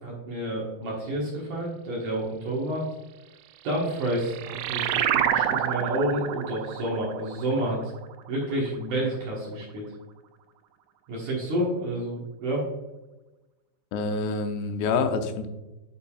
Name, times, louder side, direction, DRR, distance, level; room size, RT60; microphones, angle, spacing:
voice 1, 0.0-2.9 3.6-7.8 8.3-9.9 11.1-12.7, right 1 dB, 60° right, -4 dB, 2.2 m, -29 dB
sound 1, 3.7-8.8, right 10 dB, 85° right, 2.7 m, -29 dB
voice 2, 13.9-15.5, left 4 dB, 85° left, 6 dB, 2.8 m, -27 dB
8.7 x 5.2 x 2.3 m, 1.0 s
omnidirectional pair, 4.9 m